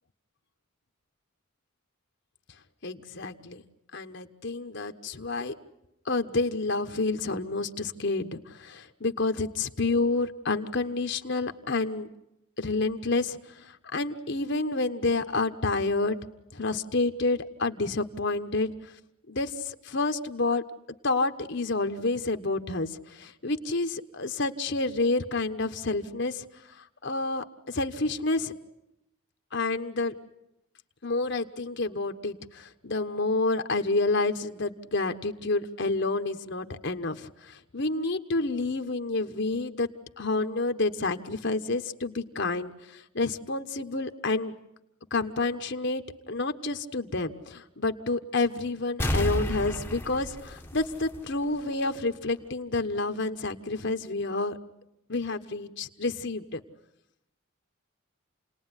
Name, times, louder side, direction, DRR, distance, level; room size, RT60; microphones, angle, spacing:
voice 1, 2.8-3.6 3.9-5.5 6.1-12.1 12.6-16.2 16.5-18.9 19.3-20.6 21.0-26.5 26.8-28.5 29.5-30.1 31.0-39.9 40.2-44.5 45.1-54.6 55.1-56.6, left 3 dB, 55° left, 7 dB, 1.2 m, -29 dB
sound 1, 49.0-51.6 51.9-52.0, left 1 dB, 10° left, 1.2 m, -31 dB
29.5 x 19.5 x 9.9 m, 0.85 s
head